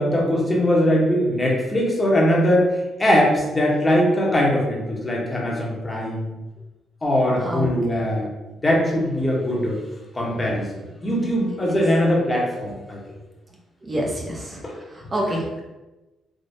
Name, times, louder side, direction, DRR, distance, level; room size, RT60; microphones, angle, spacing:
voice 1, 0.0-2.7 3.0-6.3 7.0-8.3 8.6-9.8 10.1-10.7 11.0-13.0 14.6-14.7, equal, 25° left, -2 dB, 0.9 m, -21 dB
voice 2, 11.5-11.8 13.8-14.6 14.9-15.6, right 1 dB, 30° right, -2 dB, 0.6 m, -27 dB
3.5 x 2.4 x 2.6 m, 1.1 s
cardioid pair, 90°, 0 cm